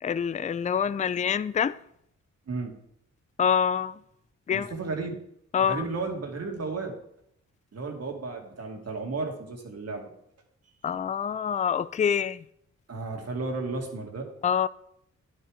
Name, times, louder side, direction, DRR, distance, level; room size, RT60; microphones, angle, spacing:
voice 1, 0.0-1.8 3.4-4.0 4.5-4.7 5.5-5.8 10.8-12.4 14.4-14.7, left 7 dB, 25° left, 0.4 m, -26 dB
voice 2, 4.5-5.2 5.6-7.0 7.7-10.0 12.9-14.3, right 3 dB, 55° right, 2.3 m, -33 dB
10.0 x 6.9 x 4.9 m
cardioid pair, 65°, 30 cm